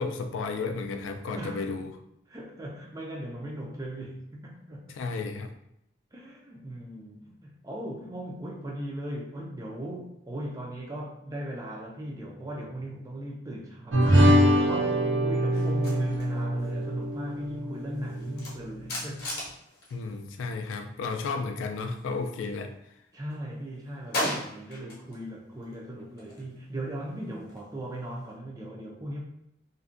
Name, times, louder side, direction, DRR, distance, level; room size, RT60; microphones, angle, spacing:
voice 1, 0.0-1.9 4.9-5.5 19.9-22.7, left 4 dB, 80° left, 6 dB, 0.3 m, -33 dB
voice 2, 1.3-1.7 2.3-5.0 6.1-19.3 21.0-21.1 23.1-29.2, right 1 dB, 15° right, -1 dB, 0.4 m, -38 dB
sound 1, 13.9-18.6, equal, 75° right, 0.5 m, -24 dB
sound 2, 15.5-20.9 21.1-22.8 23.1-25.2 25.6-28.3, left 1 dB, 50° left, 0.8 m, -39 dB
2.5 x 2.1 x 2.4 m, 0.78 s
head